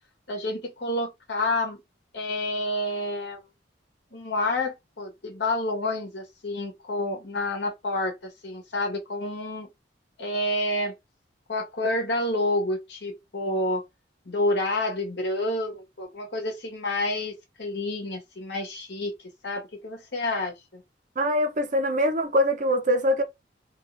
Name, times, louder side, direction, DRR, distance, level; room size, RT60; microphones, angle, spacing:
voice 1, 0.3-1.8 2.1-3.5 4.1-9.7 10.2-10.9 11.5-13.8 14.2-20.8, left 1 dB, 70° left, 1.6 m, -29 dB
voice 2, 21.2-23.2, equal, 45° right, 0.8 m, -23 dB
3.6 x 2.7 x 3.3 m
head